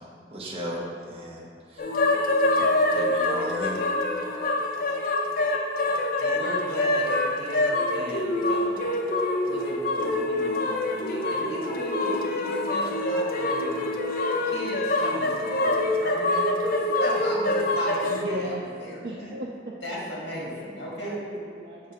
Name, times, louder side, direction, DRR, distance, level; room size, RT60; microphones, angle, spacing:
voice 1, 0.0-1.9 2.6-3.8, equal, 35° right, -3 dB, 0.9 m, -36 dB
sound 1, 1.8-18.2, left 2 dB, 50° left, 0.5 m, -25 dB
voice 2, 6.2-8.9 9.4-13.9 14.4-19.3 19.8-21.2, equal, 70° left, -5 dB, 1.6 m, -37 dB
voice 3, 18.1-18.6 19.0-19.7 21.0-21.9, right 1 dB, 60° right, -4 dB, 0.5 m, -35 dB
7.4 x 2.5 x 5.7 m, 2.2 s
head